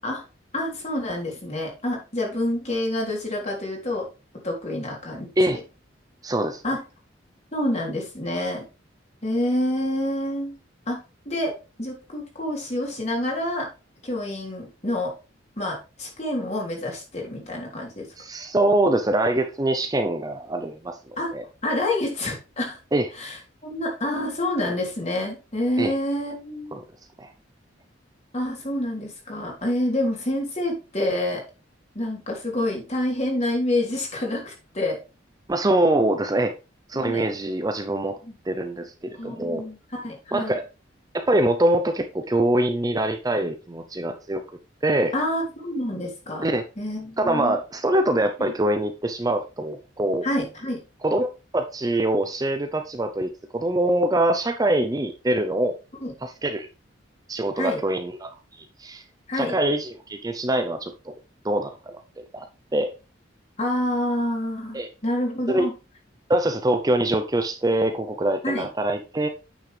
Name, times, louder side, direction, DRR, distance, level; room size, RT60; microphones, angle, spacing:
voice 1, 0.5-4.1 4.4-5.6 6.6-6.8 7.5-8.6 9.2-10.5 10.9-11.0 11.2-13.7 14.0-15.1 15.6-18.1 21.2-21.3 21.6-22.8 23.2-23.4 23.6-26.8 28.3-31.4 31.9-35.0 36.9-37.3 38.2-38.3 39.2-40.5 45.1-46.5 46.8-47.6 48.4-48.5 50.2-50.8 56.0-56.1 57.5-57.8 59.3-59.5 63.6-65.7 68.4-68.7, left 1 dB, 35° left, -1 dB, 3.4 m, -27 dB
voice 2, 6.2-6.6 18.2-21.0 21.3-21.4 22.9-23.1 25.8-25.9 26.7-26.8 27.2-27.3 35.5-36.5 36.9-38.1 38.5-39.6 40.3-40.6 41.1-44.4 44.8-45.1 46.4-46.6 47.2-50.2 51.0-55.8 56.2-56.7 57.3-58.3 58.8-59.0 59.3-61.1 61.4-62.0 62.3-62.5 62.7-62.9 64.7-64.9 65.5-65.7 66.3-69.3, right 1 dB, 20° right, 7 dB, 0.6 m, -24 dB
8.9 x 6.4 x 3.3 m, 0.29 s
head